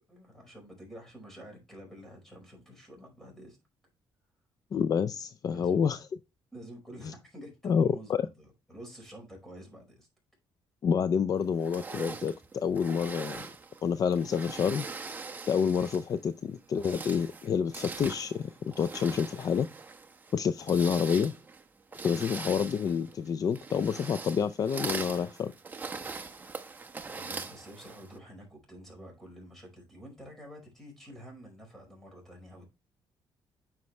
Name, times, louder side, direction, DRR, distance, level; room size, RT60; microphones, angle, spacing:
voice 1, 0.1-3.6 5.4-6.0 6.5-10.1 22.1-22.5 27.1-32.7, equal, 5° left, 4.8 m, -49 dB
voice 2, 4.7-6.1 7.0-7.1 7.6-8.2 10.8-13.5 13.8-14.9 15.5-19.7 20.3-21.3 22.0-25.5, left 7 dB, 45° left, 0.4 m, -28 dB
sound 1, 11.6-16.2 16.6-28.2, right 4 dB, 20° right, 0.9 m, -42 dB
9.5 x 6.0 x 3.2 m
cardioid pair, 130°, 9 cm